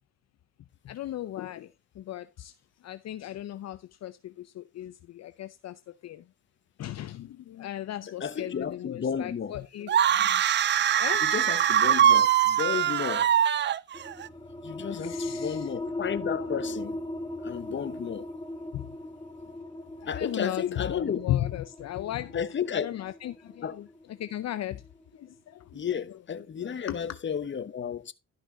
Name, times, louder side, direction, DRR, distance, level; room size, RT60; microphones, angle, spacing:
voice 1, 0.8-2.5 2.8-6.2 6.8-10.4 10.9-11.2 14.9-15.7 18.7-19.0 20.0-22.4 22.7-24.8 25.1-27.2, left 13 dB, 60° left, 0.6 m, -36 dB
voice 2, 8.2-9.6 11.2-13.3 14.6-17.0 17.4-18.3 20.1-21.2 22.3-22.9 23.6-23.8 25.7-28.1, left 7 dB, 40° left, 1.0 m, -32 dB
sound 1, 9.9-14.3, right 10 dB, 40° right, 0.4 m, -22 dB
sound 2, 13.9-25.2, left 1 dB, 15° left, 1.5 m, -39 dB
12.0 x 5.9 x 3.9 m
cardioid pair, 90°, 30 cm